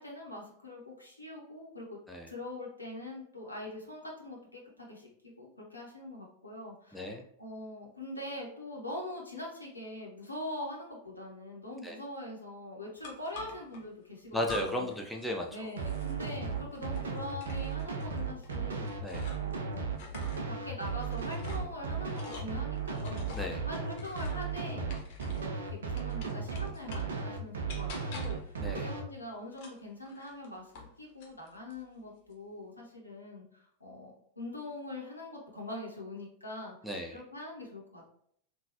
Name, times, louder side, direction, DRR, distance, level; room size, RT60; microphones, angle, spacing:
voice 1, 0.0-2.0 2.3-7.1 7.4-14.9 15.5-20.2 20.5-23.3 23.7-24.9 25.3-30.7 31.0-38.1, left 1 dB, 85° left, -2 dB, 0.7 m, -43 dB
voice 2, 6.9-7.2 11.8-12.0 14.3-15.7 19.0-19.3 23.3-23.6 28.6-28.9 36.8-37.2, left 1 dB, ahead, 0 dB, 0.4 m, -35 dB
sound 1, 13.0-13.8 14.4-15.0 15.3-19.6 19.9-25.6 26.0-27.2 27.7-28.5 29.5-30.9 31.2-31.8, left 5 dB, 50° left, 0.8 m, -46 dB
sound 2, 15.8-29.0, right 6 dB, 65° right, 0.5 m, -35 dB
3.7 x 2.3 x 2.8 m, 0.68 s
figure-of-eight pair, 90°, 0 cm